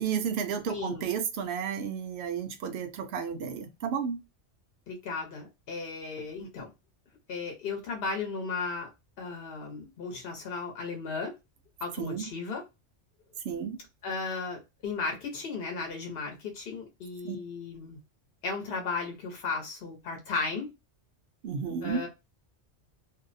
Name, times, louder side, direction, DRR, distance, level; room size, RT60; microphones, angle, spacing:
voice 1, 0.0-4.2 12.0-12.3 13.4-13.8 17.2-17.4 21.4-22.0, right 7 dB, 70° right, 0.8 m, -32 dB
voice 2, 0.7-1.0 4.9-6.7 7.3-8.9 9.2-11.3 11.8-12.6 14.0-18.0 18.4-20.7 21.8-22.1, left 4 dB, 60° left, 0.9 m, -35 dB
2.6 x 2.0 x 2.5 m
omnidirectional pair, 1.2 m